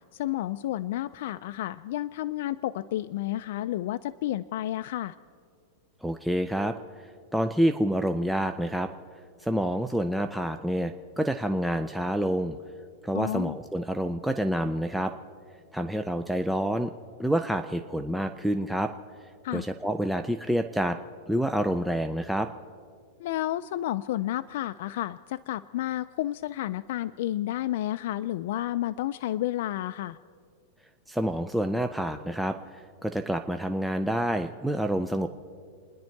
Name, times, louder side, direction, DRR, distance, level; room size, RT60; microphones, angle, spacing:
voice 1, 0.1-5.1 13.1-13.6 19.4-19.7 23.2-30.2, left 13 dB, 60° left, 11 dB, 0.4 m, -31 dB
voice 2, 6.0-8.9 9.4-12.6 13.0-15.1 15.7-16.9 17.2-18.9 19.5-21.0 21.3-22.5 31.1-35.3, equal, ahead, 6 dB, 0.4 m, -28 dB
28.5 x 10.5 x 4.6 m, 2.2 s
supercardioid pair, 160°, 0 cm